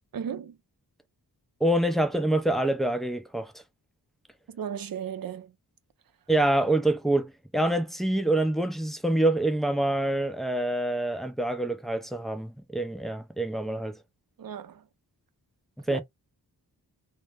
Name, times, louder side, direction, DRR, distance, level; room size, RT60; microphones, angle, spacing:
voice 1, 0.1-0.6 4.5-5.5 14.4-14.8 15.9-16.0, right 8 dB, 60° right, 0.5 m, -35 dB
voice 2, 1.6-3.5 6.3-14.0 15.8-16.0, right 1 dB, ahead, 0.4 m, -26 dB
2.0 x 2.0 x 3.2 m
wide cardioid pair, 65°, 40 cm